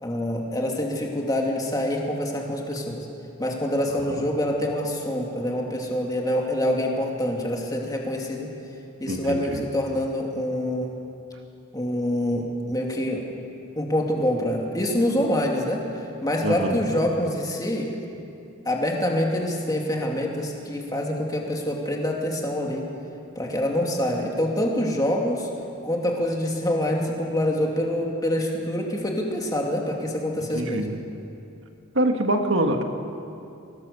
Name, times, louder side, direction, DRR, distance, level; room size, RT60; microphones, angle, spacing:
voice 1, 0.0-3.1 3.4-8.5 9.0-10.9 11.7-13.3 13.8-15.8 16.2-17.9 18.6-22.8 23.4-25.5 25.8-30.9, left 1 dB, 20° left, 0 dB, 2.6 m, -26 dB
voice 2, 9.1-9.6 16.4-16.8 30.5-31.0 31.9-32.8, right 1 dB, 70° right, 4 dB, 1.8 m, -25 dB
24.0 x 18.5 x 7.0 m, 2.7 s
head